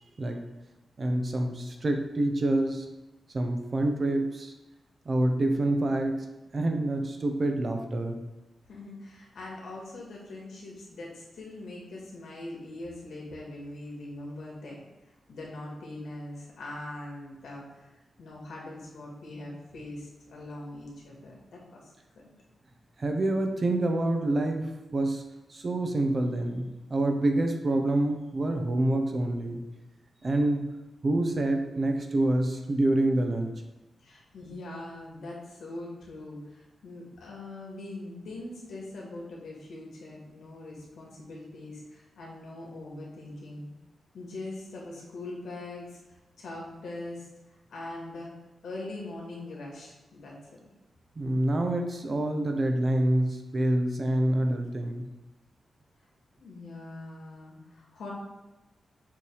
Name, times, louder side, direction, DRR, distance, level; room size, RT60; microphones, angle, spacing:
voice 1, 1.0-2.9 3.3-4.5 5.1-6.3 6.5-8.1 23.0-25.2 25.5-29.6 30.2-30.7 31.0-33.5 51.2-55.1, right 1 dB, 35° right, 4 dB, 0.7 m, -27 dB
voice 2, 8.7-14.8 15.3-17.9 18.2-21.9 34.0-43.7 44.1-48.3 48.6-50.5 56.3-58.1, left 2 dB, 85° left, -3 dB, 2.2 m, -42 dB
7.0 x 3.2 x 4.7 m, 1.0 s
wide cardioid pair, 155°, 0 cm